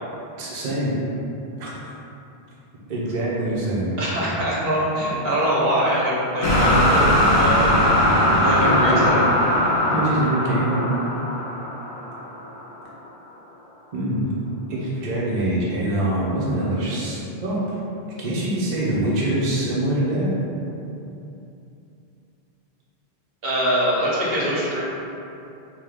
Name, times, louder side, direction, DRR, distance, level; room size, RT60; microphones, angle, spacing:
voice 1, 0.4-0.9 1.6-1.9 2.9-3.9 8.5-9.1 9.9-10.8 13.9-14.2 14.7-17.6 18.2-20.3, right 1 dB, 50° right, -7 dB, 0.7 m, -24 dB
voice 2, 4.0-7.1 7.4-7.8 8.4-9.2 23.4-24.8, equal, 70° right, -6 dB, 1.0 m, -23 dB
sound 1, 6.4-12.5, equal, 40° left, 0.7 m, -19 dB
3.6 x 2.7 x 3.5 m, 2.8 s
omnidirectional pair, 1.1 m